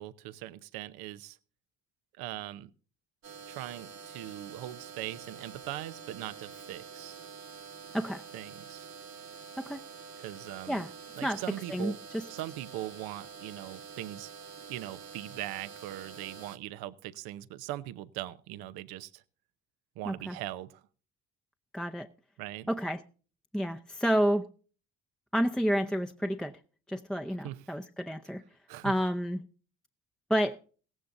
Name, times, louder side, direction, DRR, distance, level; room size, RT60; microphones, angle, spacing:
voice 1, 0.0-1.4 2.2-2.7 3.5-7.3 8.3-8.9 10.2-10.8 11.2-12.0 12.3-14.3 14.5-19.2 20.0-20.8 22.4-22.7 27.4-27.6 28.7-28.9, right 14 dB, 85° right, 14 dB, 0.9 m, -40 dB
sound 1, 3.2-16.6, right 5 dB, 50° right, 1.4 m, -47 dB
voice 2, 11.7-12.3 20.1-20.4 21.7-22.1 22.7-23.0 23.5-24.5 25.3-26.5 26.9-28.4 28.8-29.4 30.3-30.6, equal, ahead, 6 dB, 0.7 m, -30 dB
16.5 x 15.5 x 2.6 m, 0.39 s
supercardioid pair, 75°, 36 cm